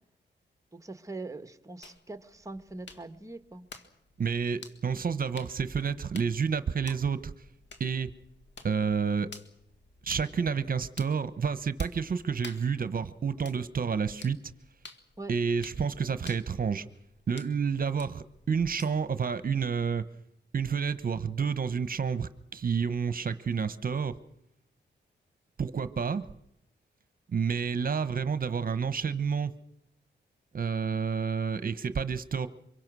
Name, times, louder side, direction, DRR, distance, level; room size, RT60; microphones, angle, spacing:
voice 1, 0.7-3.7 15.2-15.3, right 2 dB, 15° right, 10 dB, 1.5 m, -42 dB
sound 1, 1.8-19.2, left 4 dB, 70° left, 2.0 m, -52 dB
voice 2, 4.2-7.3 7.8-8.1 8.6-9.3 10.0-14.4 15.3-16.8 17.3-20.0 20.5-24.1 25.6-26.3 27.3-29.5 30.5-32.5, right 6 dB, 50° right, 13 dB, 1.1 m, -29 dB
25.0 x 23.0 x 6.3 m, 0.77 s
wide cardioid pair, 95°, 19 cm